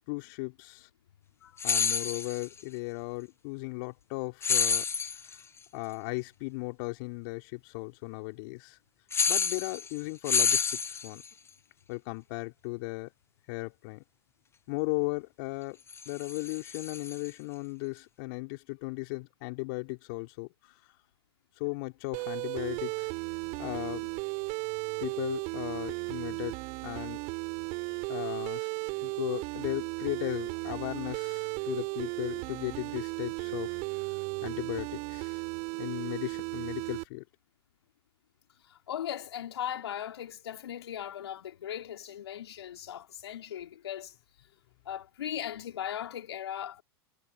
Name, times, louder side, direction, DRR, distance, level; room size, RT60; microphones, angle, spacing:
voice 1, 0.1-0.9 1.6-4.9 5.2-5.4 5.7-8.8 9.3-11.2 11.9-13.1 13.5-14.0 14.7-15.8 16.1-20.8 21.6-23.1 23.6-24.1 25.0-26.5 26.8-27.2 28.1-28.7 29.0-33.8 34.4-35.4 35.8-37.2, left 27 dB, 55° left, 4.0 m, -36 dB
sound 1, 1.6-2.5 4.4-5.3 9.1-10.0 10.2-11.3 15.9-17.3, left 6 dB, 20° left, 1.3 m, -28 dB
sound 2, 22.1-37.0, right 31 dB, 50° right, 7.0 m, -35 dB
voice 2, 38.6-44.1 44.9-46.8, left 10 dB, 75° left, 3.9 m, -38 dB
hypercardioid pair, 95°, 14 cm